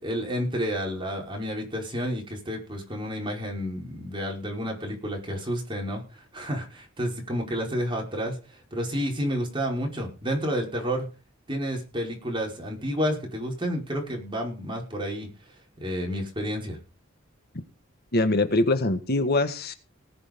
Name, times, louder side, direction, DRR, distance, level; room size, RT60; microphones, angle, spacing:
voice 1, 0.0-11.1 11.5-15.3 15.8-16.8, equal, 25° right, 0 dB, 5.2 m, -30 dB
voice 2, 18.1-19.7, left 2 dB, 50° left, 9 dB, 1.6 m, -23 dB
19.0 x 6.9 x 5.2 m, 0.33 s
head